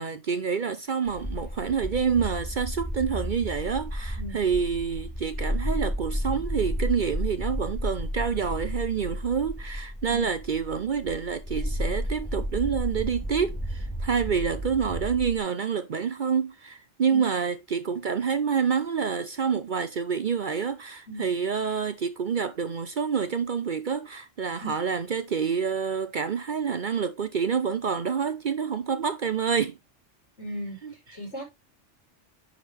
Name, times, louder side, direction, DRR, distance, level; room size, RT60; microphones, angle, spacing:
voice 1, 0.0-29.8 30.8-30.9, right 6 dB, 50° right, 0.7 m, -28 dB
sound 1, 1.1-15.4, equal, 10° left, 1.8 m, -32 dB
voice 2, 30.4-31.4, equal, 70° left, 4.8 m, -37 dB
10.0 x 5.1 x 3.4 m
omnidirectional pair, 1.2 m